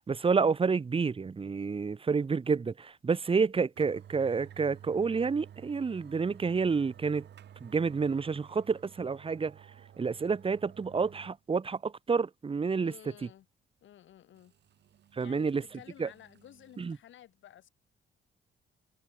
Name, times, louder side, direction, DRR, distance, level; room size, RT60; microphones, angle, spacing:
voice 1, 0.1-7.3 7.6-9.6 10.0-12.9 15.1-15.6 16.0-16.1 16.8-17.0, right 5 dB, 25° right, 1.0 m, -29 dB
sound 1, 3.3-3.4 3.8-11.4 11.8-11.9 14.3-17.0, right 10 dB, 60° right, 1.5 m, -53 dB
voice 2, 12.8-13.5 13.8-14.5 15.2-17.7, left 11 dB, 75° left, 5.9 m, -53 dB
cardioid pair, 90°, 20 cm